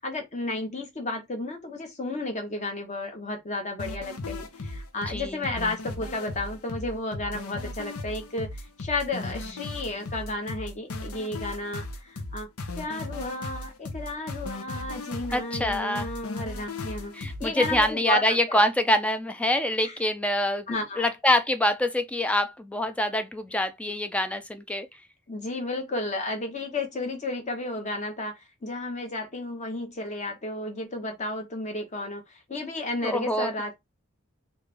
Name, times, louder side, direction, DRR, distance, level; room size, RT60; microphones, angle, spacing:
voice 1, 0.0-12.5 12.8-18.6 19.8-19.9 20.7-21.1 25.3-33.7, left 2 dB, 35° left, 1.0 m, -33 dB
sound 1, 3.8-17.9, left 2 dB, 85° left, 0.7 m, -37 dB
voice 2, 5.1-5.5 15.3-16.1 17.1-24.9 33.0-33.5, left 1 dB, 5° left, 0.4 m, -25 dB
3.2 x 2.5 x 3.3 m
head